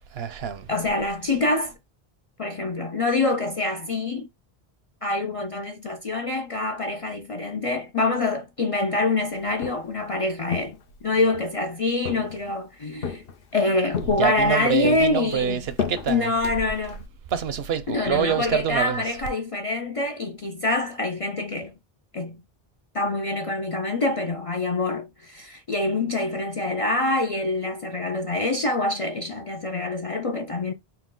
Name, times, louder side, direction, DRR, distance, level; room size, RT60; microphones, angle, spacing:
voice 1, 0.1-0.7 14.2-16.3 17.3-19.0, right 8 dB, 75° right, 0.9 m, -26 dB
voice 2, 0.7-1.7 2.4-4.3 5.0-10.8 11.0-13.2 13.5-15.6 16.1-17.0 17.9-21.7 22.1-22.4 22.9-30.7, left 2 dB, 45° left, 0.5 m, -25 dB
Walk footsteps, 9.4-10.0 10.5-11.5 12.1-12.6 13.0-13.6 13.9-14.5 14.8-17.1, left 6 dB, 65° left, 1.0 m, -33 dB
4.3 x 2.3 x 3.7 m
omnidirectional pair, 1.0 m